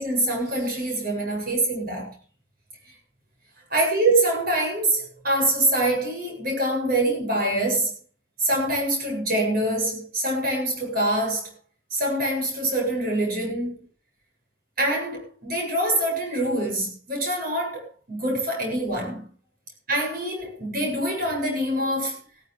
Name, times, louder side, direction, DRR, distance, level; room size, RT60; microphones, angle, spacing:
voice 1, 0.0-2.1 3.7-7.9 8.4-11.5 11.9-13.9 14.8-19.3 19.9-22.2, right 1 dB, 45° right, 7.8 m, -25 dB
17.0 x 15.0 x 3.4 m
head